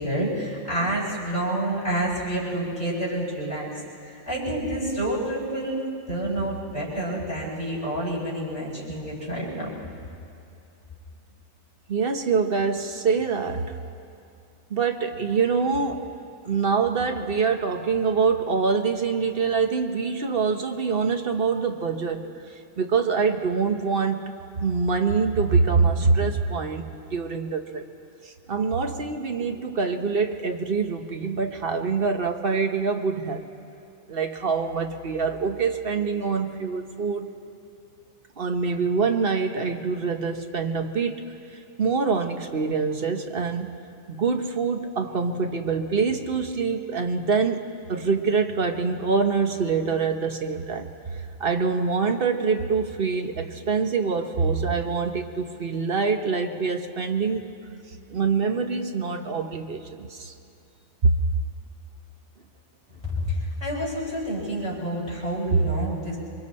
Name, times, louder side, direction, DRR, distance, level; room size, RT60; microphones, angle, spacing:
voice 1, 0.0-9.7 63.0-66.2, right 1 dB, 25° left, -8 dB, 6.9 m, -28 dB
voice 2, 11.9-13.7 14.7-16.1 16.4-22.3 22.8-24.3 24.6-26.8 27.1-27.8 28.2-33.4 34.1-37.3 38.4-41.2 41.8-43.7 44.1-57.5 58.1-60.3 61.0-61.1 65.5-65.6, right 5 dB, 45° right, 5 dB, 1.2 m, -25 dB
27.0 x 23.0 x 4.3 m, 2.6 s
omnidirectional pair, 1.4 m